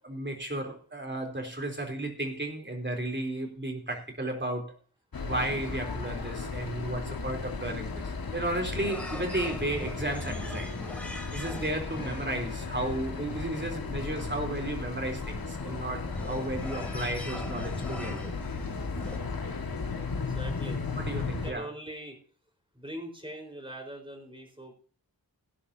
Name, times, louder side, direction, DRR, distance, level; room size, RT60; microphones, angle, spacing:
voice 1, 0.0-4.8 5.2-10.8 11.3-18.3 21.0-21.7, right 1 dB, 30° right, 3 dB, 3.7 m, -34 dB
sound 1, 5.1-21.5, left 4 dB, 70° left, 1.9 m, -35 dB
sound 2, 7.6-19.2, left 1 dB, 5° left, 2.9 m, -43 dB
voice 2, 20.1-20.8 21.2-22.2 22.7-24.7, right 1 dB, 15° right, 4 dB, 4.6 m, -42 dB
18.0 x 10.5 x 2.8 m, 0.41 s
wide cardioid pair, 60°, 37 cm